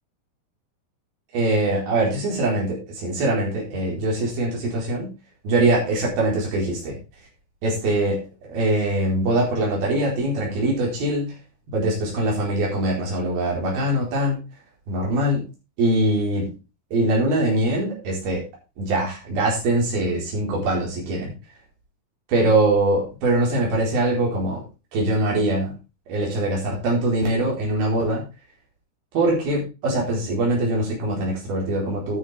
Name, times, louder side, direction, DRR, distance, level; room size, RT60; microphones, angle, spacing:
voice 1, 1.3-5.1 5.4-7.0 7.6-8.2 8.5-11.4 11.7-14.4 14.9-15.4 15.8-16.5 16.9-18.4 18.8-21.3 22.3-24.6 24.9-25.7 26.1-28.3 29.1-32.2, right 1 dB, 80° right, -3 dB, 6.3 m, -22 dB
12.0 x 10.0 x 3.5 m, 0.29 s
omnidirectional pair, 4.2 m